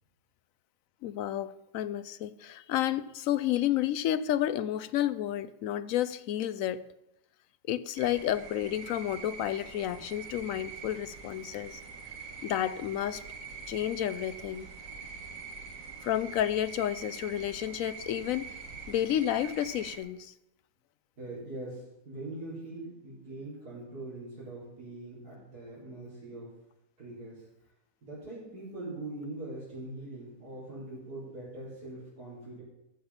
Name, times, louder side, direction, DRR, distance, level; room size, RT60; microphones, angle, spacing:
voice 1, 1.0-6.9 7.7-11.8 12.4-13.2 13.7-14.7 16.0-18.6 18.9-20.3, left 11 dB, 70° left, 0.9 m, -31 dB
sound 1, 8.0-20.0, right 5 dB, 55° right, 1.9 m, -44 dB
voice 2, 21.2-26.5 27.0-27.5 28.0-32.6, right 2 dB, 75° right, 4.9 m, -42 dB
14.5 x 7.1 x 5.7 m
omnidirectional pair, 1.7 m